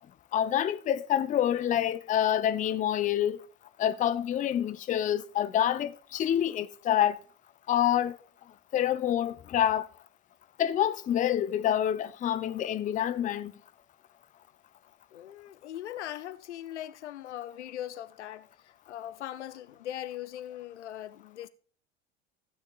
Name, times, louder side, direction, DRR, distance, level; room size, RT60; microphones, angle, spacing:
voice 1, 0.3-3.5 3.8-7.2 7.7-8.2 8.7-9.9 10.6-13.5, left 10 dB, 20° left, 0.5 m, -27 dB
voice 2, 15.1-21.5, left 12 dB, 75° left, 0.7 m, -40 dB
15.5 x 9.4 x 2.4 m
figure-of-eight pair, 75°, 35 cm